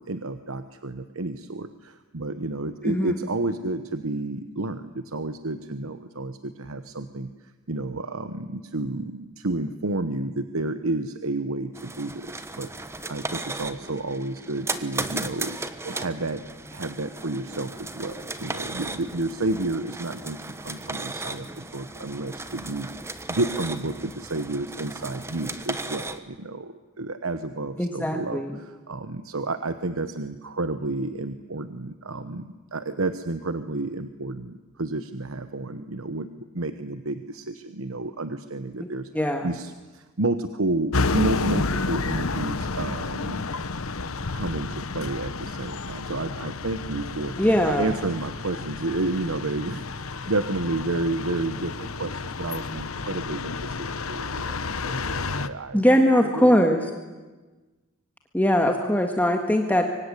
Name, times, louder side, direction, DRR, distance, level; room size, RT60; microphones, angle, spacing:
voice 1, 0.0-15.6 15.8-22.9 23.3-43.5 44.3-47.3 47.6-56.6, right 2 dB, 80° right, 10 dB, 1.1 m, -31 dB
sound 1, 11.7-26.2, right 2 dB, 15° right, 1.2 m, -36 dB
voice 2, 27.8-28.6 39.1-39.5 47.4-47.9 55.7-56.8 58.3-59.9, equal, 10° left, 3 dB, 1.7 m, -21 dB
sound 2, 40.9-55.5, left 3 dB, 90° left, 1.1 m, -31 dB
25.0 x 24.0 x 9.9 m, 1.2 s
head